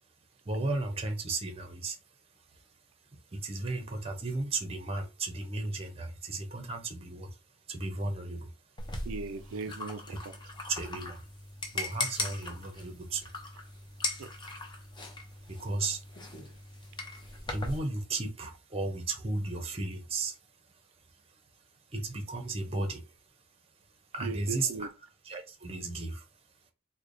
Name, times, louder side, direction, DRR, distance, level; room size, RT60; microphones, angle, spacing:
voice 1, 0.4-2.0 3.3-7.3 7.7-8.5 10.7-11.2 11.7-13.3 15.5-16.0 16.8-20.4 21.9-23.1 24.1-24.9 25.2-26.3, right 2 dB, 30° right, 0.7 m, -35 dB
sound 1, 8.8-17.8, left 2 dB, 20° left, 0.7 m, -39 dB
voice 2, 9.0-10.4 14.2-14.3 24.2-24.9, right 5 dB, 90° right, 0.4 m, -38 dB
3.3 x 2.2 x 3.8 m
head